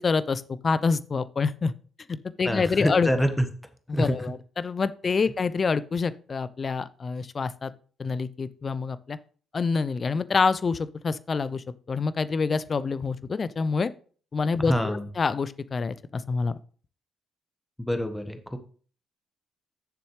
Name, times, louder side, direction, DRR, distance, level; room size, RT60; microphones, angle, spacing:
voice 1, 0.0-1.7 2.1-3.1 3.9-7.7 8.0-9.2 9.5-13.9 14.3-16.5, left 4 dB, 40° left, 16 dB, 0.6 m, -27 dB
voice 2, 2.4-3.5 3.9-4.3 14.6-15.1 17.8-18.6, equal, 5° left, 7 dB, 1.4 m, -26 dB
9.2 x 7.0 x 3.3 m, 0.42 s
hypercardioid pair, 45°, 0 cm